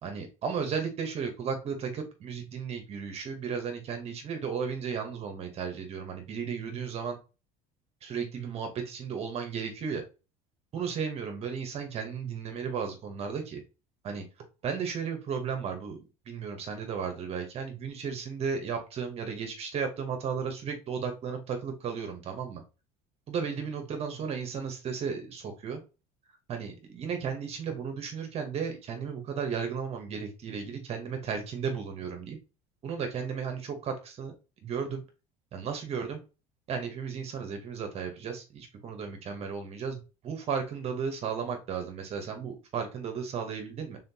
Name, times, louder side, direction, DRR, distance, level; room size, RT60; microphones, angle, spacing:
voice 1, 0.0-7.2 8.0-10.0 10.7-13.6 14.0-14.2 14.6-16.0 16.3-22.6 23.3-25.8 26.5-32.4 32.8-34.3 34.6-35.0 35.5-36.2 36.7-44.0, right 6 dB, 40° right, 5 dB, 0.9 m, -34 dB
4.3 x 3.7 x 2.7 m, 0.31 s
cardioid pair, 120°, 16 cm